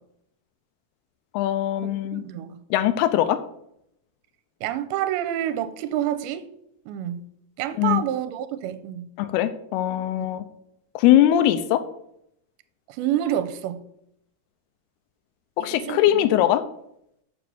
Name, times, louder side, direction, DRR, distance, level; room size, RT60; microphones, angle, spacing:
voice 1, 1.3-2.2 2.7-3.4 7.8-8.0 9.2-10.4 11.0-11.8 15.6-16.6, left 12 dB, 90° left, 11 dB, 2.7 m, -21 dB
voice 2, 2.1-2.6 4.6-6.5 6.9-7.2 7.6-9.1 13.0-13.8 15.6-16.0, right 11 dB, 85° right, 11 dB, 2.5 m, -28 dB
7.4 x 6.8 x 6.0 m, 0.74 s
omnidirectional pair, 4.5 m